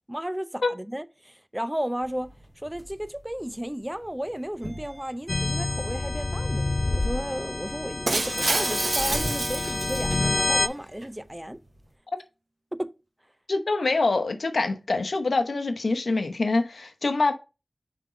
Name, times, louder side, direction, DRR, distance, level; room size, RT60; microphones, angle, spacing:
voice 1, 0.1-2.3 2.6-11.6 12.7-12.9, equal, 10° right, 0.5 m, -33 dB
sound 1, 2.0-12.0, equal, 35° right, 3.2 m, -44 dB
sound 2, 5.3-10.7, left 2 dB, 55° left, 0.5 m, -28 dB
Shatter, 8.1-10.5, right 3 dB, 80° right, 0.7 m, -28 dB
voice 2, 13.5-17.3, left 3 dB, 90° left, 0.8 m, -25 dB
5.5 x 3.7 x 5.0 m
wide cardioid pair, 55°, 0 cm